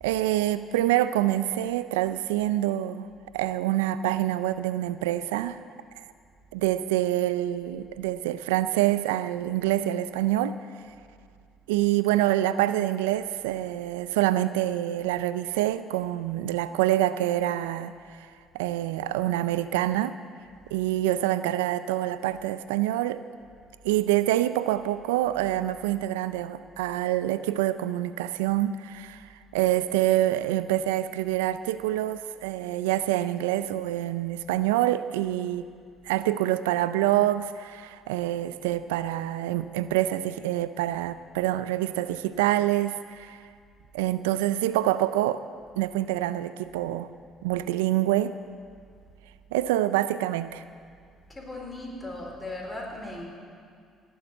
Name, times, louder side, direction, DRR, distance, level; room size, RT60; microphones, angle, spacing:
voice 1, 0.0-3.1 3.3-5.6 6.0-6.1 6.5-10.6 11.7-18.3 18.5-20.2 20.7-23.2 23.8-35.7 36.0-43.4 43.9-45.4 45.8-47.1 47.4-48.4 49.5-50.6, right 14 dB, 90° right, 14 dB, 0.4 m, -26 dB
voice 2, 51.3-53.2, left 2 dB, 20° left, -1 dB, 4.4 m, -37 dB
17.5 x 7.1 x 8.3 m, 2.2 s
hypercardioid pair, 65°, 0 cm